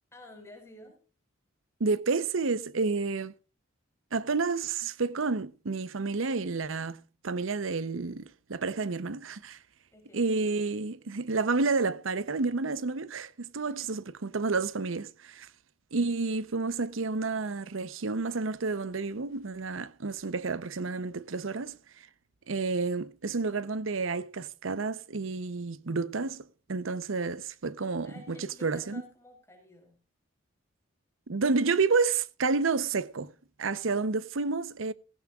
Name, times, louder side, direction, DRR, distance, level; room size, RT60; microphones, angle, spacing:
voice 1, 0.1-1.0 9.9-10.3 13.6-13.9 28.0-30.0, left 1 dB, 15° left, 4.8 m, -52 dB
voice 2, 1.8-3.3 4.1-9.6 10.1-15.5 15.9-21.8 22.5-29.0 31.3-33.3 33.6-34.9, right 4 dB, 80° right, 0.8 m, -30 dB
16.5 x 16.5 x 2.4 m
head